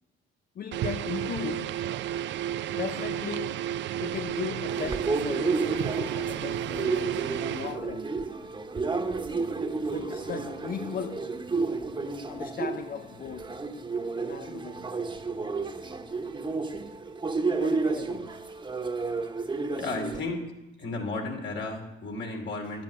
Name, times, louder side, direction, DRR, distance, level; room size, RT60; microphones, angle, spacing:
voice 1, 0.6-1.9 2.7-3.7 4.0-8.1 9.8-11.4 12.3-13.7 14.2-14.9 15.6-15.7 17.5-18.4 19.8-20.2, left 8 dB, 50° left, 0.6 m, -38 dB
sound 1, 0.7-7.8, right 11 dB, 70° right, 0.4 m, -32 dB
sound 2, 4.7-20.2, right 3 dB, 25° right, 1.1 m, -31 dB
voice 2, 19.7-20.4 20.8-22.8, left 2 dB, 65° left, 2.9 m, -33 dB
10.5 x 9.0 x 7.4 m
cardioid pair, 90°, 20 cm